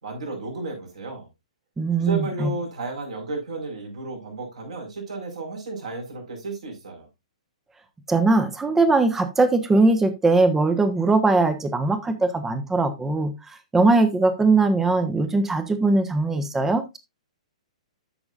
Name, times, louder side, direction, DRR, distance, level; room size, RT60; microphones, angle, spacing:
voice 1, 0.0-1.3 2.0-7.1, right 3 dB, 60° right, 4.8 m, -33 dB
voice 2, 1.8-2.5 8.1-17.0, right 3 dB, 10° right, 1.2 m, -20 dB
13.0 x 6.1 x 2.5 m
figure-of-eight pair, 115°, 4 cm